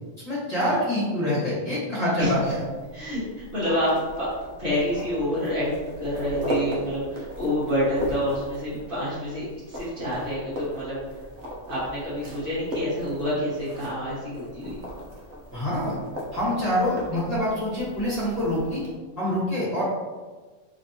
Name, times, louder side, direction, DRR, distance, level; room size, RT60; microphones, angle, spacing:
voice 1, 0.2-2.6 15.5-16.0 16.3-18.8 19.2-19.8, left 1 dB, 30° left, -9 dB, 1.4 m, -25 dB
sound 1, 2.2-18.9, equal, 65° right, 1.2 m, -37 dB
voice 2, 2.9-4.3 4.6-11.0 11.7-14.8, equal, 45° right, -9 dB, 1.6 m, -28 dB
4.2 x 3.2 x 2.8 m, 1.3 s
omnidirectional pair, 1.3 m